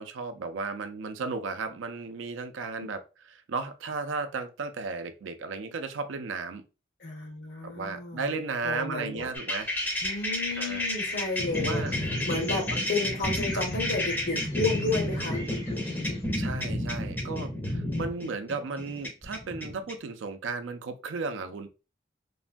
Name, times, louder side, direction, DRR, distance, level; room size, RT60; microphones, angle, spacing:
voice 1, 0.0-6.6 7.6-9.7 10.6-10.8 11.6-11.9 12.7-12.8 13.5-13.6 16.4-21.7, right 4 dB, 85° right, 0.4 m, -34 dB
voice 2, 7.0-8.2 8.6-9.3 10.0-11.8 12.3-15.4, left 3 dB, 65° left, 0.9 m, -32 dB
sound 1, 9.3-19.9, left 1 dB, 10° left, 0.5 m, -31 dB
sound 2, 9.5-16.3, left 2 dB, 85° left, 1.1 m, -45 dB
3.1 x 2.1 x 2.5 m
head